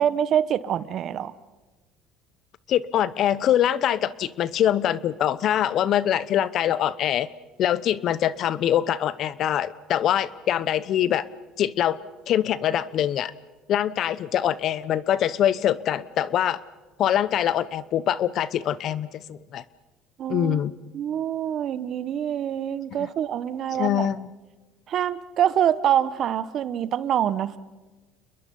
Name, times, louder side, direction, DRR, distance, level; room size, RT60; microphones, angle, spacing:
voice 1, 0.0-1.3 20.2-20.6 20.9-24.1 24.9-27.6, right 10 dB, 50° right, 16 dB, 1.0 m, -25 dB
voice 2, 2.7-7.3 7.6-11.2 11.6-12.0 12.3-13.3 13.7-16.6 17.0-19.6 20.3-20.7 23.0-23.1 23.7-24.3, left 11 dB, 55° left, 17 dB, 0.9 m, -24 dB
29.0 x 21.5 x 5.5 m, 1.2 s
supercardioid pair, 100°, 0 cm